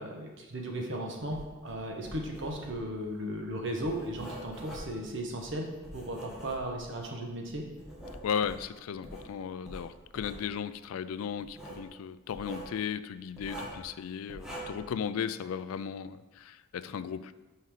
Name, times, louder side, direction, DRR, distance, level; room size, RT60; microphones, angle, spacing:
voice 1, 0.0-7.7, right 1 dB, 60° right, 1 dB, 1.2 m, -36 dB
Writing, 1.3-7.0 7.5-9.3 9.6-10.4 11.4-11.9 12.3-12.7 13.4-13.9 14.3-14.9, right 1 dB, ahead, 1.5 m, -45 dB
voice 2, 8.2-17.3, left 7 dB, 85° left, 14 dB, 0.3 m, -36 dB
5.7 x 5.4 x 4.8 m, 1.1 s
head